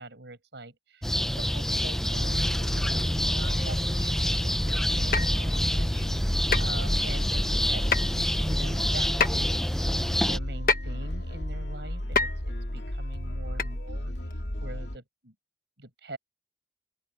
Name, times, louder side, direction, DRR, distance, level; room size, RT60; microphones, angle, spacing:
voice 1, 0.0-6.1 6.6-8.1 8.4-9.8 10.3-14.3 14.6-15.3 15.8-16.2, right 2 dB, 90° right, 5.4 m, -43 dB
sound 1, 1.0-10.4, equal, ahead, 0.5 m, -27 dB
sound 2, 2.0-15.0, left 1 dB, 90° left, 2.5 m, -34 dB
sound 3, 5.1-5.4 6.5-6.7 7.9-8.2 9.2-9.3 10.7-10.9 12.2-12.4 13.6-13.7 14.3-14.4, left 4 dB, 50° left, 1.3 m, -25 dB
open air
head